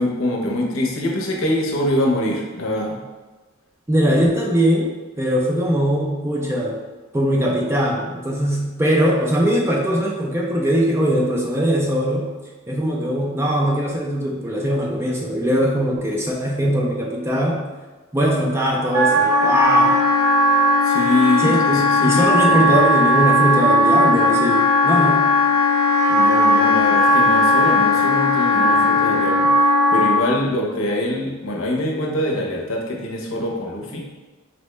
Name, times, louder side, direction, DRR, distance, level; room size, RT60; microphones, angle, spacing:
voice 1, 0.0-3.0 20.8-22.7 26.1-34.0, left 1 dB, 75° left, 0 dB, 0.7 m, -24 dB
voice 2, 3.9-6.8 7.1-12.3 12.7-17.6 18.1-20.0 21.4-25.3, equal, 10° right, -2 dB, 0.4 m, -20 dB
Wind instrument woodwind instrument, 18.9-30.2, left 1 dB, 85° right, 0.6 m, -17 dB
4.2 x 2.1 x 3.1 m, 1.3 s
head